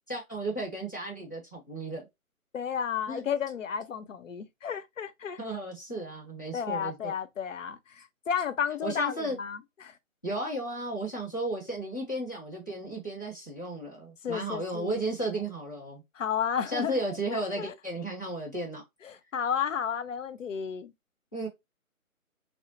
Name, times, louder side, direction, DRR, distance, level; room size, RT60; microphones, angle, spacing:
voice 1, 0.1-2.0 3.1-3.2 5.4-7.1 8.8-9.4 10.2-16.0 16.7-18.8 21.3-21.5, right 2 dB, 15° left, 0.6 m, -34 dB
voice 2, 2.5-5.4 6.5-10.0 14.2-15.0 16.1-16.9 17.3-17.7 19.0-20.9, left 7 dB, 60° left, 0.6 m, -32 dB
3.8 x 2.0 x 2.8 m
figure-of-eight pair, 155°, 42 cm